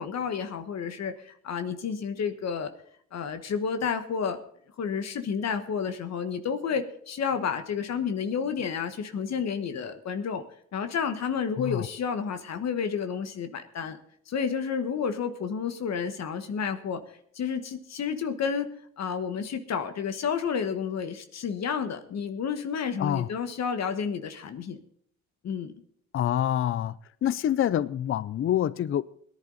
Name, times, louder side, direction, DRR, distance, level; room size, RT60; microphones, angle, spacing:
voice 1, 0.0-2.7 3.1-4.4 4.8-10.4 10.7-14.0 14.3-17.0 17.3-18.7 19.0-24.8 25.4-25.7, left 6 dB, 60° left, 1.3 m, -30 dB
voice 2, 26.1-26.9 27.2-29.0, left 11 dB, 45° left, 0.5 m, -26 dB
17.5 x 11.0 x 3.9 m
cardioid pair, 90°, 30 cm